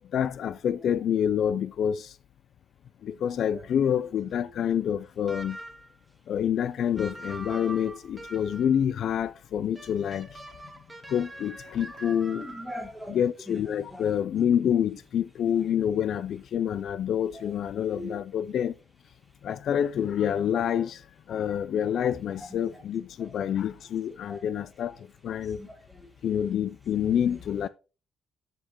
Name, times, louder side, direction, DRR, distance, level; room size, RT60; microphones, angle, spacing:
voice 1, 0.1-2.1 3.0-5.6 6.3-10.3 11.1-12.5 13.1-18.7 19.4-21.0 21.3-25.0 25.2-25.6 26.2-27.7, left 9 dB, 65° left, 0.3 m, -27 dB
voice 2, 3.2-3.9 4.4-4.5 12.4-13.2 13.5-14.1 17.3-17.6 17.9-18.2 22.0-22.5 22.7-22.8 23.2-23.6 24.1-24.6 25.4-26.4 26.9-27.4, left 1 dB, 5° left, 3.3 m, -43 dB
sound 1, 5.3-6.0 7.0-8.8 9.7-12.9, right 1 dB, 10° right, 1.8 m, -43 dB
12.0 x 6.6 x 2.9 m
cardioid pair, 90°, 0 cm